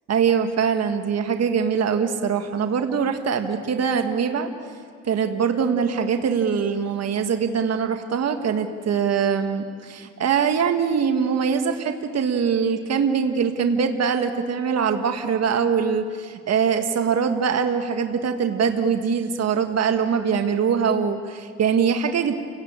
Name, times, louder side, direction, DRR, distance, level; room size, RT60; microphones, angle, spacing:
voice 1, 0.1-4.5 5.0-22.3, right 6 dB, 55° right, 6 dB, 1.7 m, -23 dB
29.0 x 17.5 x 8.8 m, 2.1 s
cardioid pair, 90°, 30 cm